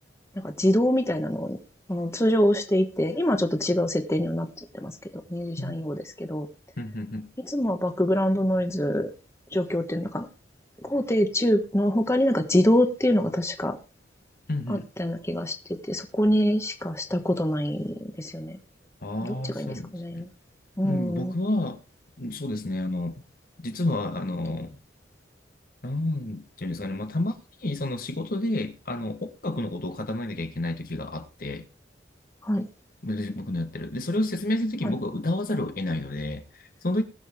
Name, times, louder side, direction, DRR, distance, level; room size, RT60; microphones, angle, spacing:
voice 1, 0.4-1.6 1.9-5.0 5.3-6.5 7.4-9.1 9.5-10.3 10.8-13.8 14.7-18.6 19.2-20.3 20.8-21.3 32.4-32.7 34.8-34.9, equal, 15° left, 1.2 m, -25 dB
voice 2, 6.8-7.3 14.5-14.9 19.0-20.3 20.8-21.8 22.2-23.2 23.6-24.8 25.8-31.7 33.0-37.0, left 1 dB, 50° left, 1.2 m, -30 dB
20.5 x 7.0 x 3.5 m
head